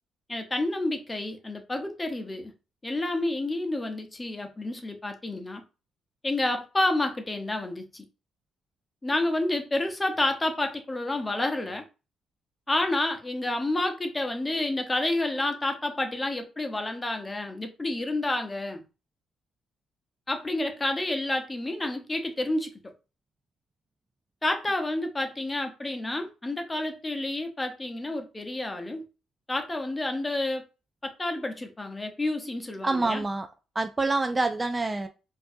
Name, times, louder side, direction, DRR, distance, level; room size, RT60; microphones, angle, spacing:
voice 1, 0.3-2.5 2.8-5.6 6.2-8.0 9.0-11.8 12.7-18.8 20.3-22.7 24.4-29.0 29.5-30.6 31.0-33.2, left 2 dB, 20° left, 0.8 m, -29 dB
voice 2, 32.8-33.5 33.8-35.1, right 2 dB, 20° right, 0.3 m, -26 dB
4.4 x 2.7 x 2.6 m
cardioid pair, 90°, 0 cm